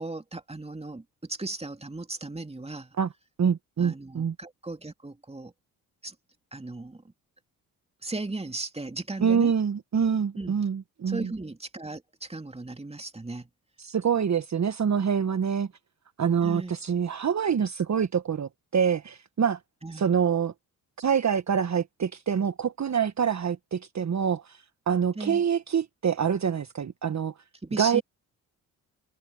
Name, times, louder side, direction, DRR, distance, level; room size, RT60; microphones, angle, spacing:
voice 1, 0.0-2.9 3.8-5.5 6.0-6.1 6.5-7.1 8.0-9.5 10.4-10.5 11.1-13.5 16.4-16.7 19.8-20.1 25.1-25.4 27.6-28.0, right 2 dB, 15° right, 2.7 m, -36 dB
voice 2, 3.4-4.3 9.2-11.3 13.8-15.7 16.2-19.6 19.9-20.5 21.0-27.3 27.8-28.0, right 7 dB, 35° right, 1.5 m, -26 dB
hypercardioid pair, 50°, 45 cm